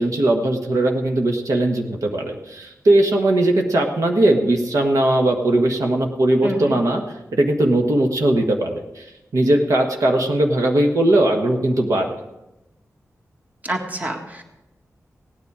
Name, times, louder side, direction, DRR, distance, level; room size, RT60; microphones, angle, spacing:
voice 1, 0.0-7.0 7.3-9.1 9.3-12.1, right 1 dB, 80° right, 2 dB, 1.5 m, -19 dB
voice 2, 6.4-6.7 13.6-14.4, right 2 dB, 30° right, 2 dB, 1.8 m, -27 dB
17.0 x 10.0 x 4.9 m, 0.97 s
wide cardioid pair, 140°, 6 cm